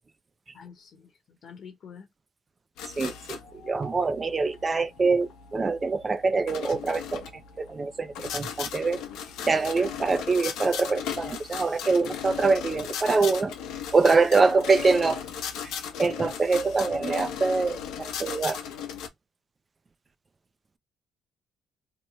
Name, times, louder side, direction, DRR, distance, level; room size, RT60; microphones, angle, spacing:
voice 1, 0.5-1.1 1.4-2.1, left 7 dB, 60° left, 1.0 m, -46 dB
sound 1, 2.8-19.1, left 8 dB, 80° left, 0.7 m, -37 dB
voice 2, 3.0-3.4 3.6-7.2 7.6-9.0 9.5-13.5 13.9-15.2 16.0-18.6, right 4 dB, 30° right, 0.4 m, -24 dB
2.9 x 2.2 x 3.0 m
supercardioid pair, 85°, 0 cm